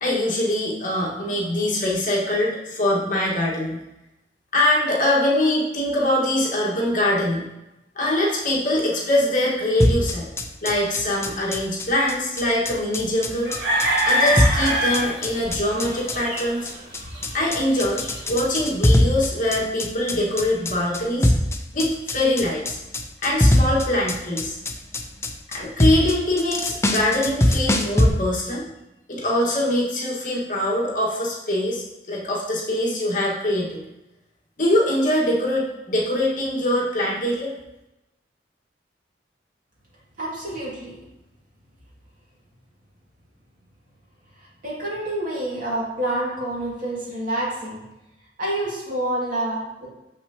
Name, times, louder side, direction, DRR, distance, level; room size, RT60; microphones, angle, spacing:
voice 1, 0.0-3.8 4.5-7.5 7.9-10.3 10.6-13.5 14.0-16.7 17.3-21.3 21.7-22.8 23.2-24.6 25.5-28.6 29.1-33.8 34.6-37.5, left 1 dB, 50° left, -4 dB, 1.6 m, -23 dB
sound 1, 9.8-28.1, left 1 dB, 15° left, 0.5 m, -22 dB
sound 2, 13.4-18.3, equal, 80° right, 1.9 m, -24 dB
voice 2, 40.2-41.0 44.6-47.8 48.4-49.9, right 1 dB, 50° right, -5 dB, 2.2 m, -27 dB
6.8 x 5.9 x 2.9 m, 0.95 s
head